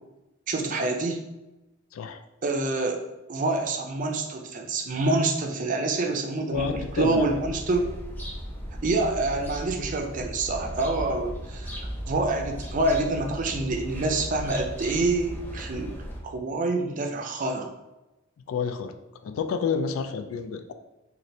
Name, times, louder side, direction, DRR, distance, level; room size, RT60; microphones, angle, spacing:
voice 1, 0.5-1.2 2.4-3.0 3.3-7.9 8.8-11.7 12.1-15.9 16.2-17.7, right 2 dB, 40° right, 2 dB, 0.4 m, -26 dB
voice 2, 1.9-2.2 6.5-7.3 18.5-18.9 19.2-20.7, left 5 dB, 85° left, 8 dB, 0.3 m, -29 dB
sound 1, 6.5-16.2, equal, 10° left, 0.5 m, -37 dB
3.1 x 2.5 x 2.7 m, 0.99 s
head